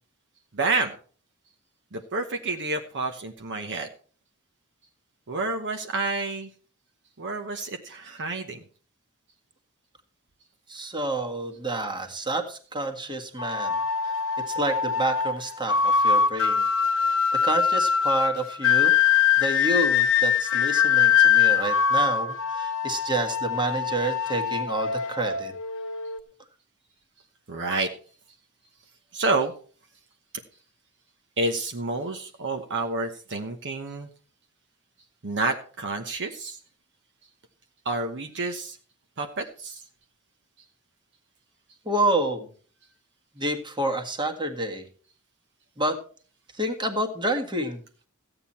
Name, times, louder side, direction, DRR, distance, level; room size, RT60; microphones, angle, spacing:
voice 1, 0.5-0.9 1.9-3.9 5.3-6.5 7.2-8.6 27.5-27.9 29.1-29.5 31.4-34.1 35.2-36.6 37.8-38.8 39.2-39.8, right 3 dB, 55° right, 5 dB, 1.1 m, -29 dB
voice 2, 10.7-13.8 14.0-14.1 14.5-16.7 16.9-17.2 17.4-18.9 19.4-25.5 41.8-42.5 43.3-44.8 45.8-46.0 46.6-47.8, right 2 dB, 20° right, 3 dB, 1.7 m, -29 dB
sound 1, 13.4-26.2, left 7 dB, 60° left, 1.0 m, -23 dB
15.0 x 8.9 x 4.3 m, 0.42 s
head